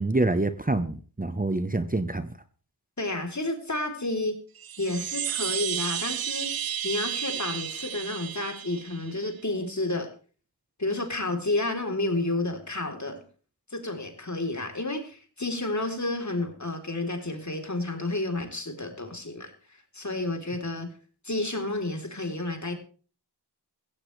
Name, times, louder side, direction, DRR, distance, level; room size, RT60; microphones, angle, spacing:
voice 1, 0.0-2.3, right 2 dB, 20° right, 11 dB, 1.0 m, -26 dB
voice 2, 3.0-4.4 4.8-10.1 10.8-13.3 13.7-19.5 19.9-20.9 21.2-22.8, left 2 dB, 45° left, 4 dB, 3.7 m, -30 dB
Chime, 4.6-9.3, right 10 dB, 60° right, 0.5 m, -32 dB
15.5 x 15.5 x 3.3 m, 0.39 s
wide cardioid pair, 55°, 41 cm